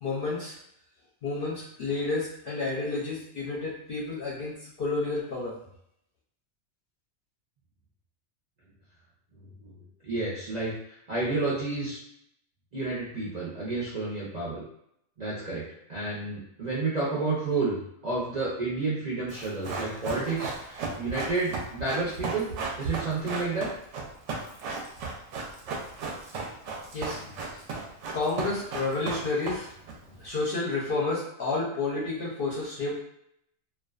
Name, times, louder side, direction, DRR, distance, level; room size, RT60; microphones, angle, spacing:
voice 1, 0.0-0.6 1.2-5.6 26.9-27.6 28.1-29.7 30.2-32.9, left 3 dB, 55° left, -6 dB, 0.6 m, -30 dB
voice 2, 10.0-12.0 12.7-14.6 15.2-17.7 18.0-22.5 22.8-23.7 30.0-30.1, right 3 dB, 50° right, -7 dB, 0.5 m, -30 dB
Run, 19.3-29.9 30.2-30.3, right 4 dB, 70° right, 0.8 m, -35 dB
2.4 x 2.2 x 2.3 m, 0.73 s
omnidirectional pair, 1.4 m